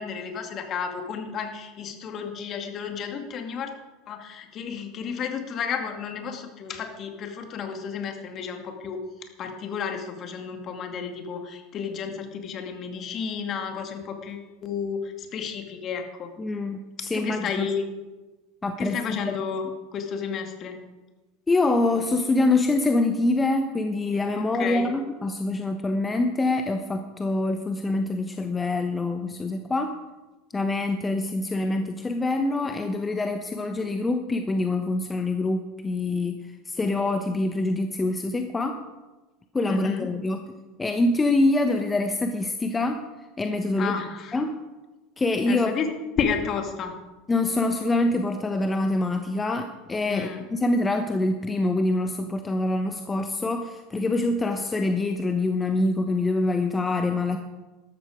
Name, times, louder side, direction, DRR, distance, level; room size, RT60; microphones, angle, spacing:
voice 1, 0.0-3.7 4.1-9.0 9.4-16.3 17.1-17.8 18.8-19.7 19.9-20.8 24.3-24.9 39.7-40.1 43.8-44.4 45.5-45.9 46.2-46.9 50.1-50.4, left 6 dB, 40° left, 5 dB, 2.3 m, -32 dB
voice 2, 16.4-17.7 18.6-19.4 21.5-29.9 30.5-38.8 39.5-40.4 40.8-43.0 43.4-44.0 44.3-44.6 45.2-45.7 47.3-57.4, left 2 dB, 20° left, 6 dB, 1.1 m, -25 dB
13.5 x 13.0 x 5.0 m, 1.2 s
hypercardioid pair, 80°, 0 cm